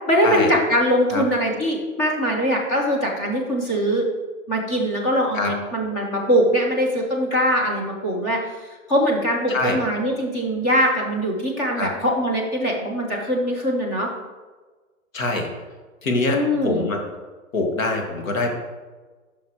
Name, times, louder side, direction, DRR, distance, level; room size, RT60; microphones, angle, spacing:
voice 1, 0.1-4.1 4.5-14.1 16.3-16.9, equal, 15° left, -2 dB, 0.5 m, -22 dB
voice 2, 9.5-9.8 11.7-11.9 15.1-15.5 16.0-17.0 17.5-18.5, left 2 dB, 65° left, 2 dB, 1.7 m, -24 dB
9.5 x 5.6 x 2.9 m, 1.3 s
hypercardioid pair, 155°, 42 cm